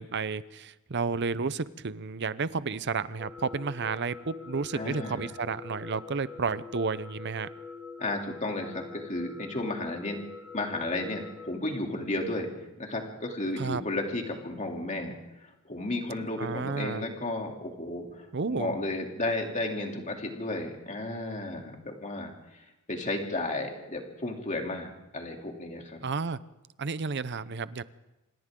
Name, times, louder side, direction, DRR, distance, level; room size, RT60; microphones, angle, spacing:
voice 1, 0.0-7.5 13.6-13.8 16.4-17.0 18.3-18.7 26.0-26.4 26.8-27.8, right 4 dB, 55° right, 15 dB, 0.7 m, -31 dB
sound 1, 3.2-11.5, left 4 dB, ahead, 4.2 m, -44 dB
voice 2, 4.7-5.3 8.0-10.2 10.5-12.5 12.8-15.1 15.6-22.3 22.9-26.0, left 2 dB, 35° left, 1 dB, 3.1 m, -33 dB
26.5 x 26.0 x 3.8 m, 1.0 s
head